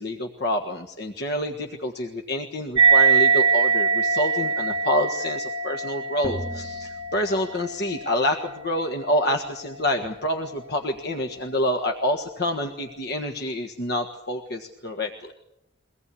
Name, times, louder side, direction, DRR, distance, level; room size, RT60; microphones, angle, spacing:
voice 1, 0.0-15.3, left 1 dB, 55° left, 3 dB, 1.6 m, -27 dB
sound 1, 2.8-9.7, right 5 dB, 30° right, 8.0 m, -23 dB
sound 2, 6.2-8.2, right 1 dB, 15° left, 2.1 m, -38 dB
23.5 x 18.5 x 8.5 m, 0.85 s
head